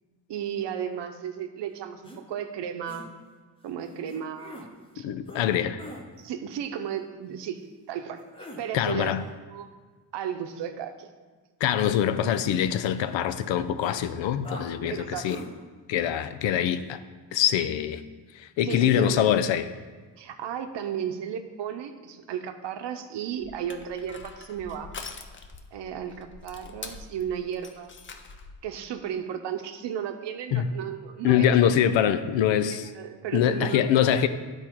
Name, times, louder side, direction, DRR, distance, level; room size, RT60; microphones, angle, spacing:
voice 1, 0.3-3.2 3.6-5.1 6.2-8.2 8.6-9.1 9.5-9.7 10.1-11.1 14.9-15.4 18.6-19.3 20.2-24.9 25.7-27.9 28.6-31.5 32.9-33.8, right 9 dB, 70° right, 7 dB, 0.8 m, -34 dB
sound 1, 2.0-2.2 2.9-3.1 4.1-4.7 5.3-5.5 5.8-6.0 8.2-8.6 11.6-13.0 13.3-13.4 13.8-14.0 14.4-14.7 15.3-15.5, left 1 dB, 10° left, 0.9 m, -43 dB
voice 2, 5.0-5.8 8.7-9.2 11.6-15.4 15.9-17.0 17.3-18.0 18.4-19.7 30.5-30.7 31.2-32.9 33.3-34.3, left 9 dB, 85° left, 12 dB, 0.6 m, -24 dB
Crushing, 23.4-28.6, left 4 dB, 30° left, 0.5 m, -44 dB
11.0 x 4.4 x 4.5 m, 1.4 s
cardioid pair, 135°, 44 cm